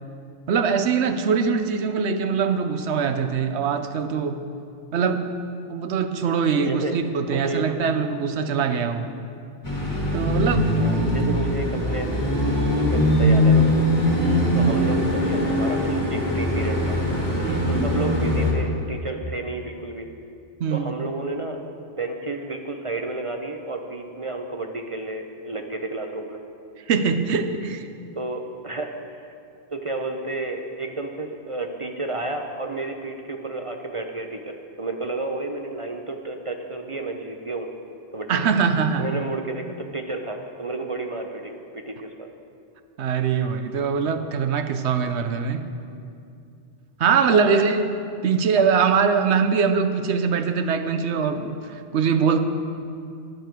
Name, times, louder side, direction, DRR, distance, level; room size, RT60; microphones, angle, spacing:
voice 1, 0.5-4.4 4.9-5.3 5.7-9.1 10.1-10.6 14.2-14.8 17.4-17.9 20.6-20.9 26.9-27.9 38.3-39.2 43.0-45.6 47.0-47.8 48.2-52.4, right 6 dB, 80° right, 8 dB, 1.0 m, -22 dB
voice 2, 6.5-7.0 7.3-7.7 10.8-12.1 12.8-13.7 14.5-17.0 17.7-20.1 20.7-26.4 28.2-29.3 29.7-37.7 38.1-38.5 39.0-42.3 47.3-47.6, right 2 dB, 35° right, 4 dB, 0.6 m, -31 dB
sound 1, 9.6-18.5, left 1 dB, 15° left, 2.0 m, -21 dB
13.0 x 9.1 x 4.5 m, 2.5 s
omnidirectional pair, 1.1 m